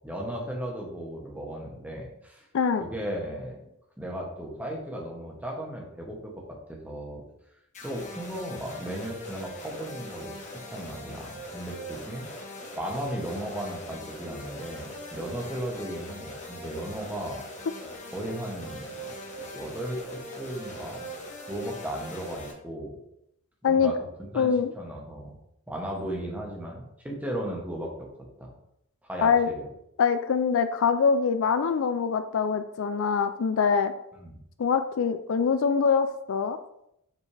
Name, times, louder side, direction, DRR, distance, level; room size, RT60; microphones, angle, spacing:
voice 1, 0.0-2.4 2.8-3.6 4.0-7.2 7.8-10.4 10.7-12.3 12.8-17.4 18.1-18.9 19.5-20.0 20.4-21.1 21.5-23.0 23.6-24.0 24.3-24.5 24.7-25.3 25.7-28.1 28.4-28.5 29.0-29.7 34.2-34.4, right 1 dB, 5° right, -1 dB, 1.1 m, -36 dB
sound 1, 7.7-22.5, equal, 35° left, 1.3 m, -41 dB
voice 2, 24.3-24.7 29.2-29.5 30.0-33.9 34.6-36.6, left 6 dB, 60° left, 10 dB, 0.4 m, -24 dB
7.2 x 4.1 x 3.3 m, 0.79 s
head